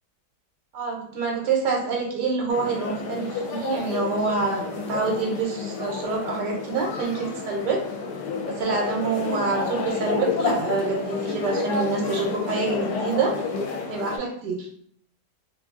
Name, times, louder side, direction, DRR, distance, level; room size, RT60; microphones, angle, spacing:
voice 1, 0.7-7.8 8.5-13.3 13.9-14.7, right 4 dB, 80° right, 0 dB, 1.2 m, -26 dB
sound 1, 2.5-14.2, left 4 dB, 75° left, 1.1 m, -30 dB
2.8 x 2.6 x 2.4 m, 0.63 s
omnidirectional pair, 1.9 m